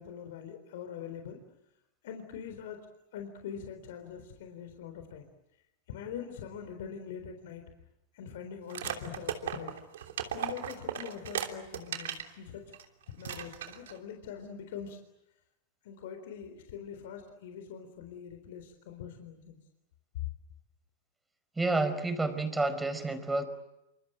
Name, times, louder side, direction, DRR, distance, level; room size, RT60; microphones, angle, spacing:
voice 1, 0.0-1.4 2.0-2.9 3.1-5.3 5.9-7.6 8.1-9.8 10.3-12.7 13.1-15.0 15.8-19.6, left 8 dB, 65° left, 6 dB, 3.9 m, -43 dB
sound 1, 8.7-12.3 12.7-12.8 13.2-14.0, right 9 dB, 70° right, 3.1 m, -36 dB
voice 2, 21.6-23.4, right 2 dB, 10° right, 9 dB, 5.1 m, -29 dB
28.0 x 26.5 x 7.7 m, 0.87 s
hypercardioid pair, 95°, 0 cm